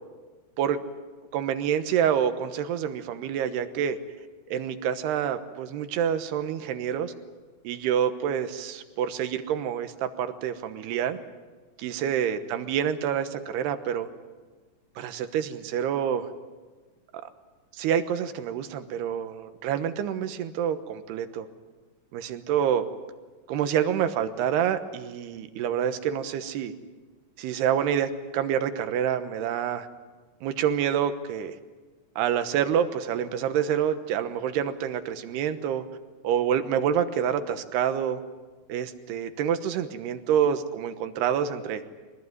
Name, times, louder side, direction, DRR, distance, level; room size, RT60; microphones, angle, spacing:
voice 1, 1.3-4.0 4.5-7.1 7.6-11.2 11.8-14.1 15.0-16.3 17.8-21.5 22.1-22.9 23.5-26.7 27.4-29.9 30.4-31.6 32.2-35.8 36.2-38.2 38.7-41.8, right 9 dB, 75° right, 10 dB, 3.1 m, -27 dB
23.0 x 20.0 x 9.6 m, 1.3 s
omnidirectional pair, 5.0 m